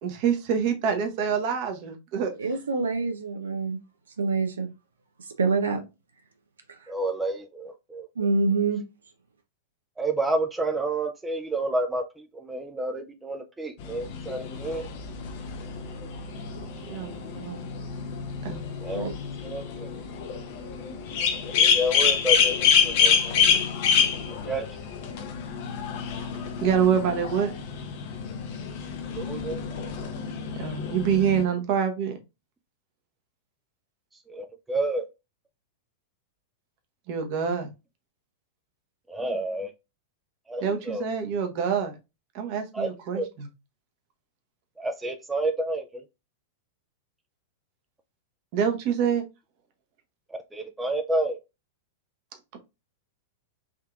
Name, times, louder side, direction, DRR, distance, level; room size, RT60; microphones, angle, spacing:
voice 1, 0.0-2.3 16.9-17.6 18.4-18.6 26.6-27.6 30.5-32.2 37.1-37.7 40.6-41.9 42.3-43.5 48.5-49.2, right 7 dB, 45° right, 0.8 m, -26 dB
voice 2, 2.4-3.8 4.2-4.7 5.4-5.8 8.2-8.8 18.9-19.1, right 4 dB, 75° right, 0.5 m, -25 dB
voice 3, 6.9-8.1 10.0-14.9 18.8-19.1 19.4-19.9 21.4-23.5 24.5-24.6 29.2-29.6 34.3-35.1 39.1-39.7 40.5-41.0 42.7-43.3 44.8-46.0 50.5-51.4, right 1 dB, 10° right, 0.4 m, -30 dB
sound 1, 13.8-31.4, left 7 dB, 50° left, 0.6 m, -27 dB
3.6 x 2.7 x 2.3 m
figure-of-eight pair, 95°, 0 cm